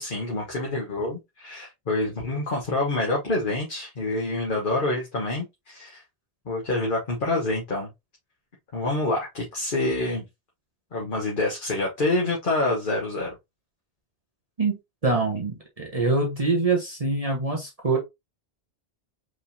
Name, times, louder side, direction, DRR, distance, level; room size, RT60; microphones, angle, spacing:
voice 1, 0.0-6.0 6.5-7.9 8.7-10.2 10.9-13.3, left 2 dB, 50° left, 1.4 m, -27 dB
voice 2, 14.6-18.0, right 3 dB, 35° right, 1.2 m, -25 dB
4.9 x 3.8 x 2.7 m
omnidirectional pair, 1.1 m